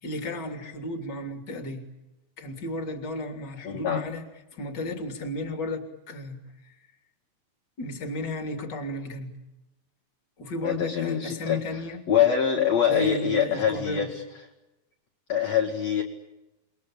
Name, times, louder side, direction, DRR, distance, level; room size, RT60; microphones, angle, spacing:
voice 1, 0.0-1.8 2.4-4.2 4.5-6.4 7.8-9.3 10.4-12.0 12.9-14.1, left 1 dB, 30° left, 5 dB, 3.3 m, -33 dB
voice 2, 3.6-4.0 10.6-11.8 12.1-14.2 15.3-16.0, left 8 dB, 50° left, 2 dB, 2.8 m, -24 dB
29.5 x 22.0 x 8.9 m, 0.99 s
omnidirectional pair, 4.6 m